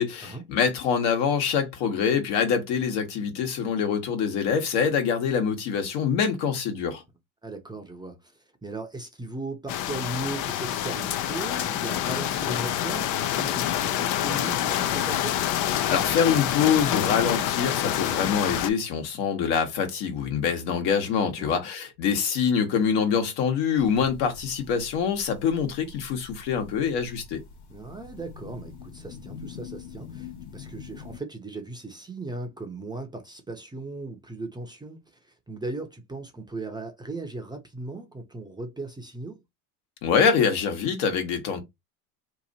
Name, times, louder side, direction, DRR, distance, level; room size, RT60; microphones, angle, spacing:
voice 1, 0.0-7.0 15.9-27.4 40.0-41.6, left 7 dB, 60° left, 1.4 m, -25 dB
voice 2, 7.4-15.4 21.4-21.6 27.7-39.4, right 2 dB, 10° right, 0.7 m, -37 dB
sound 1, 9.7-18.7, left 11 dB, 45° left, 0.5 m, -27 dB
sound 2, 23.8-31.2, left 6 dB, 75° left, 1.5 m, -44 dB
3.0 x 2.5 x 4.0 m
hypercardioid pair, 95°, 44 cm